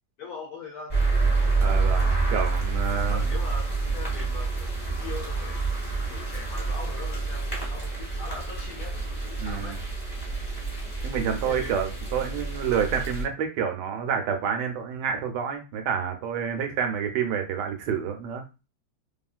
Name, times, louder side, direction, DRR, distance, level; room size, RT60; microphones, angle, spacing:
voice 1, 0.2-1.7 2.9-5.6 6.1-9.0 9.2-9.8 11.4-11.8, left 3 dB, 70° left, 1 dB, 0.9 m, -41 dB
sound 1, 0.9-13.2, right 3 dB, 20° left, 1.2 m, -28 dB
voice 2, 1.6-3.2 9.4-9.8 11.0-18.4, right 7 dB, 75° right, 5 dB, 1.1 m, -28 dB
2.8 x 2.6 x 2.4 m, 0.29 s
omnidirectional pair, 2.0 m